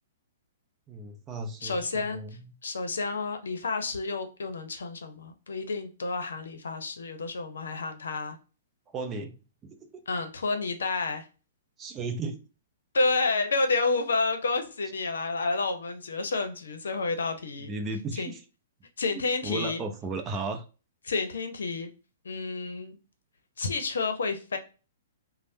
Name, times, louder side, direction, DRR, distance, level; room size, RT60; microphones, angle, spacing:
voice 1, 0.9-2.5 8.9-9.4 9.6-10.0 11.8-12.4 17.6-18.4 19.4-20.6, right 3 dB, 20° right, 0.5 m, -35 dB
voice 2, 1.6-2.2 2.6-8.4 10.1-11.3 12.9-17.7 18.2-18.3 19.0-19.8 21.0-21.9 22.2-22.9 23.6-24.6, left 3 dB, 80° left, 0.6 m, -30 dB
3.2 x 2.0 x 2.7 m
hypercardioid pair, 130°, 0 cm